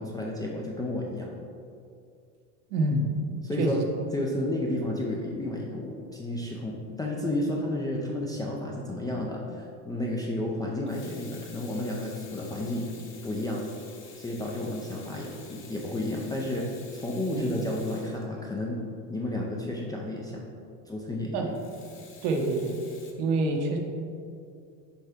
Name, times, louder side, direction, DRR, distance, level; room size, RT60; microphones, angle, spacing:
voice 1, 0.0-1.3 3.4-3.8 4.1-12.9 13.2-13.6 14.2-16.7 16.9-18.8 19.1-20.5 20.9-21.5, left 1 dB, 10° left, -3 dB, 0.3 m, -31 dB
voice 2, 2.7-3.1 3.6-3.8 17.3-17.5 21.3-21.5 22.2-22.7 23.2-23.8, right 2 dB, 70° right, 2 dB, 1.1 m, -26 dB
Water tap faucet / Sink (filling or washing), 10.9-18.9 21.5-23.1, left 5 dB, 25° left, 0.8 m, -51 dB
6.5 x 4.5 x 3.4 m, 2.4 s
supercardioid pair, 110°, 45 cm